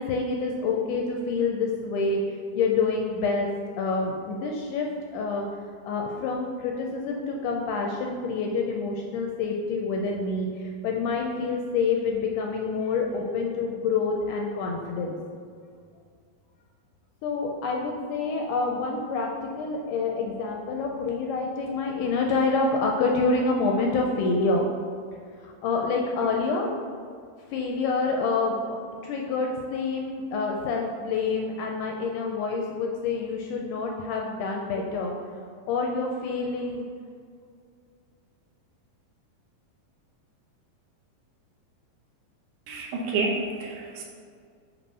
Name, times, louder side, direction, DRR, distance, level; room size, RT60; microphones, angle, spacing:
voice 1, 0.0-2.2 2.6-3.5 3.8-5.5 5.9-15.2 17.2-24.7 25.4-26.7 27.5-35.1 35.7-36.9, left 4 dB, 80° left, 1 dB, 1.8 m, -27 dB
voice 2, 42.7-44.0, right 3 dB, 75° right, 0 dB, 2.2 m, -29 dB
6.9 x 2.9 x 5.4 m, 2.2 s
omnidirectional pair, 4.0 m